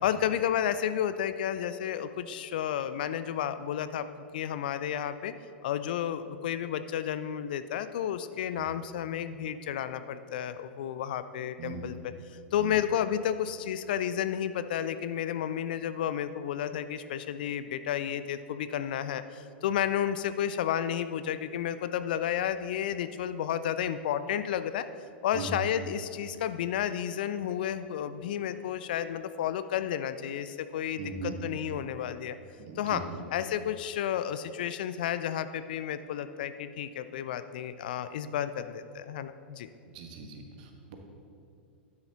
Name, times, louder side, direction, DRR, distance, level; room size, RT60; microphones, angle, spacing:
voice 1, 0.0-4.1 4.3-5.3 5.6-12.1 12.5-24.9 25.2-32.4 32.8-33.0 33.3-39.7, left 10 dB, 55° left, 12 dB, 0.4 m, -32 dB
voice 2, 31.0-31.4 32.6-33.2 39.9-41.0, right 5 dB, 50° right, 4 dB, 1.3 m, -40 dB
12.0 x 9.5 x 2.9 m, 2.6 s
figure-of-eight pair, 95°, 6 cm